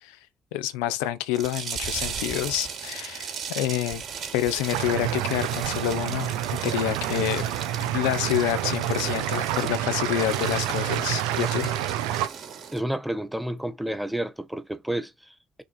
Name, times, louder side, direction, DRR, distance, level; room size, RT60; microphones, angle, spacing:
voice 1, 0.5-4.0 4.3-6.3 6.6-7.5 7.8-11.8, left 13 dB, 90° left, 0.7 m, -28 dB
sound 1, 1.3-12.8, right 6 dB, 60° right, 3.2 m, -36 dB
sound 2, 4.7-12.3, right 13 dB, 85° right, 0.9 m, -28 dB
voice 2, 12.7-15.6, right 1 dB, 5° right, 1.5 m, -31 dB
6.1 x 3.5 x 4.8 m
supercardioid pair, 55°, 0 cm